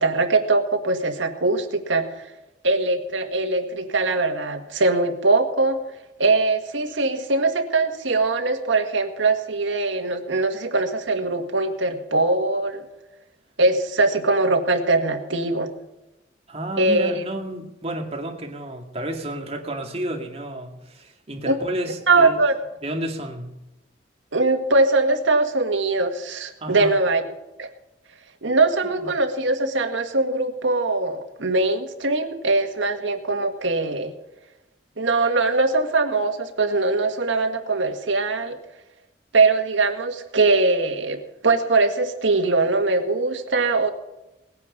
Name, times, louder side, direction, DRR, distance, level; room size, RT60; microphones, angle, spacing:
voice 1, 0.0-2.2 2.6-5.8 6.2-12.8 13.6-15.7 16.8-17.2 21.5-21.6 22.1-22.6 24.3-27.2 27.6-27.7 28.4-34.1 35.0-38.6 39.3-43.9, right 3 dB, 85° right, 6 dB, 1.9 m, -21 dB
voice 2, 16.5-22.4 22.8-23.6 26.6-27.0 28.8-29.1, right 1 dB, 35° right, 2 dB, 2.2 m, -31 dB
19.5 x 9.7 x 5.4 m, 0.97 s
head